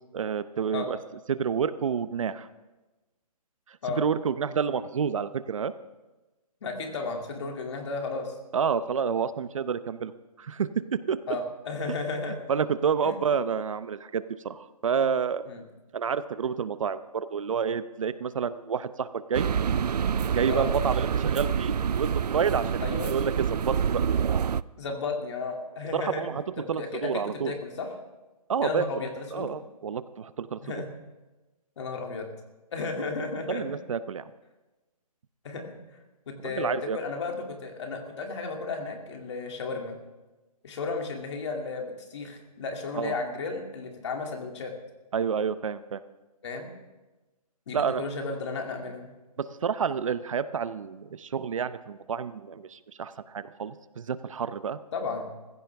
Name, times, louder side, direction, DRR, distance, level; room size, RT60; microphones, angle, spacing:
voice 1, 0.1-1.0 1.3-2.5 3.9-5.7 8.5-10.1 10.4-10.7 11.1-11.2 12.5-15.4 15.9-19.5 20.3-22.8 23.1-24.0 25.9-26.4 26.7-27.5 28.5-28.9 29.3-30.6 33.5-34.2 36.4-37.0 43.0-43.1 45.1-46.0 47.7-48.0 49.4-54.8, right 6 dB, 55° right, 14 dB, 0.7 m, -29 dB
voice 2, 6.6-8.4 11.3-12.5 13.0-13.1 15.4-15.6 20.5-20.7 22.8-23.2 24.8-26.3 26.6-27.9 28.6-29.5 30.6-31.0 31.8-32.3 32.7-33.6 35.4-35.7 36.3-40.0 40.6-44.7 46.4-46.7 47.7-49.1 54.9-55.3, left 4 dB, 45° left, 2 dB, 2.6 m, -34 dB
sound 1, 19.3-24.6, right 7 dB, 90° right, 0.5 m, -27 dB
20.5 x 15.5 x 3.5 m, 1.1 s
hypercardioid pair, 160°, 20 cm